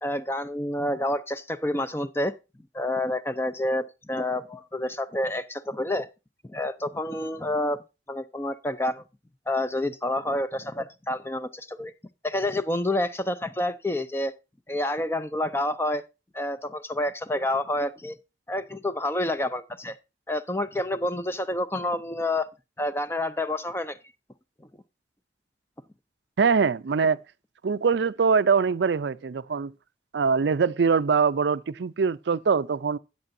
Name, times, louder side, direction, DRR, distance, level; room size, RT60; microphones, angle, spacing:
voice 1, 0.0-2.3 2.7-6.1 6.4-7.8 8.1-9.0 9.5-11.9 12.2-14.3 14.7-16.0 16.3-18.2 18.5-20.0 20.3-22.5 22.8-24.0, left 1 dB, 15° left, 0.5 m, -28 dB
voice 2, 26.4-27.2 27.6-29.7 30.1-33.0, right 5 dB, 85° right, 0.5 m, -23 dB
13.5 x 8.9 x 2.6 m
head